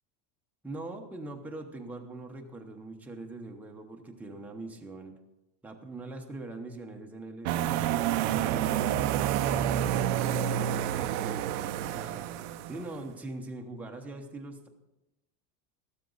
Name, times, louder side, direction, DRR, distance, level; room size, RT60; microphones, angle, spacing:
voice 1, 0.6-5.1 5.6-12.2 12.7-14.7, right 2 dB, 5° right, 2 dB, 0.8 m, -42 dB
sound 1, 7.5-13.0, right 11 dB, 55° right, 0.7 m, -29 dB
14.0 x 13.0 x 3.9 m, 0.93 s
cardioid pair, 165°, 42 cm